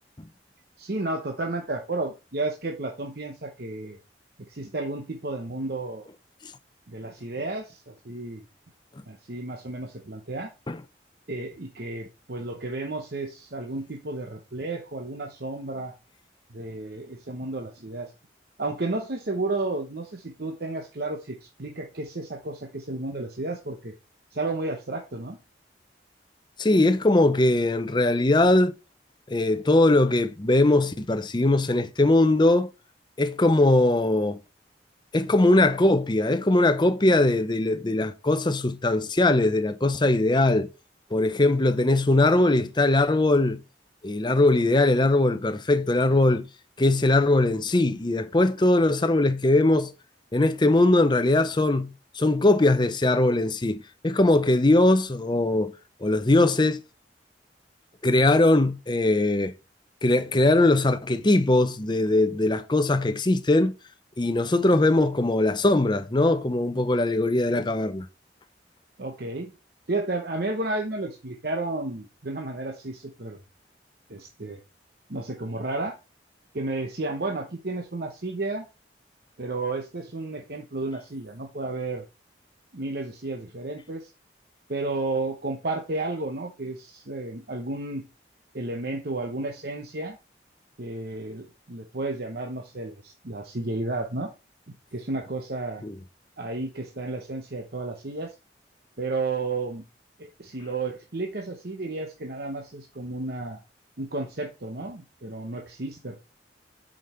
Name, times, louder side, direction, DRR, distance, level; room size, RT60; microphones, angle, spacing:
voice 1, 0.8-4.0 4.5-6.1 6.9-8.4 9.1-10.5 11.3-15.9 16.5-18.1 18.6-23.9 24.3-25.4 69.0-69.5 69.9-73.4 74.1-74.6 75.1-76.0 76.5-78.7 79.4-82.1 82.7-84.1 84.7-88.0 88.5-90.2 90.8-94.3 94.7-95.8 96.4-98.3 99.0-99.8 100.2-103.6 104.0-106.1, right 2 dB, 55° right, 0.9 m, -32 dB
voice 2, 26.6-28.7 29.3-32.7 33.2-34.4 35.1-40.7 41.1-43.6 44.0-46.4 46.8-49.9 50.3-55.7 56.0-56.8 58.0-59.5 60.0-63.7 64.2-68.1 95.8-95.9, left 2 dB, 25° left, 0.6 m, -21 dB
7.5 x 5.2 x 4.3 m
head